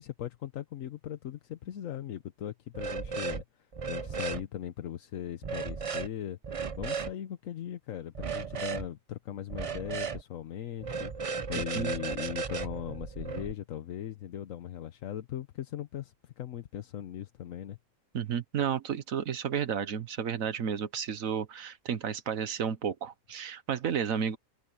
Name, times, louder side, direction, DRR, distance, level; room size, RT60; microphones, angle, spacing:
voice 1, 0.0-3.4 3.8-11.1 11.5-17.8, left 10 dB, 80° left, 1.2 m, -39 dB
sound 1, 2.7-3.4 3.7-4.4 5.4-6.1 6.4-7.1 8.1-8.9 9.5-10.2 10.8-13.5, right 5 dB, 35° right, 0.6 m, -35 dB
voice 2, 11.5-11.9 18.1-24.4, right 7 dB, 90° right, 1.5 m, -32 dB
open air
omnidirectional pair, 1.4 m